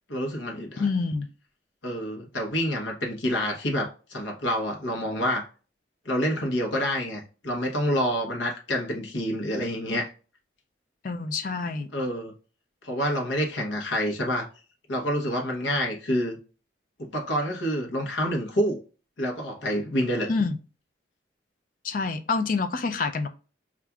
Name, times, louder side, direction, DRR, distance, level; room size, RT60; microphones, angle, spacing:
voice 1, 0.1-0.9 1.8-5.5 6.0-10.1 11.9-12.3 12.8-14.5 14.9-16.4 17.0-18.8 19.2-20.3, equal, 80° left, 0.9 m, -27 dB
voice 2, 0.8-1.3 11.0-11.9 20.3-20.5 21.8-23.3, left 4 dB, 45° left, 0.3 m, -27 dB
6.9 x 2.4 x 2.3 m
head